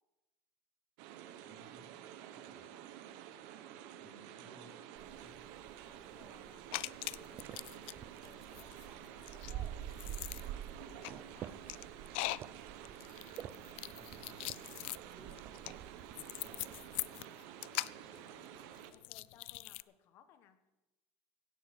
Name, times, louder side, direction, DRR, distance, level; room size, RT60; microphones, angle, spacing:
sound 1, 1.0-18.9, right 10 dB, 65° right, 1.2 m, -51 dB
voice 1, 1.4-2.0 2.3-2.7 4.0-5.4 10.0-10.4 13.7-15.8 16.4-18.3, right 1 dB, 15° right, -2 dB, 4.4 m, -62 dB
sound 2, 5.0-17.1, right 11 dB, 35° right, 0.7 m, -49 dB
voice 2, 5.9-9.1 9.3-9.9 10.8-11.6 18.9-20.7, left 9 dB, 45° left, 10 dB, 1.4 m, -63 dB
sound 3, 6.7-7.9 8.2-19.8, left 21 dB, 75° left, 0.4 m, -42 dB
16.5 x 6.6 x 8.1 m, 1.0 s
cardioid pair, 155°, 6 cm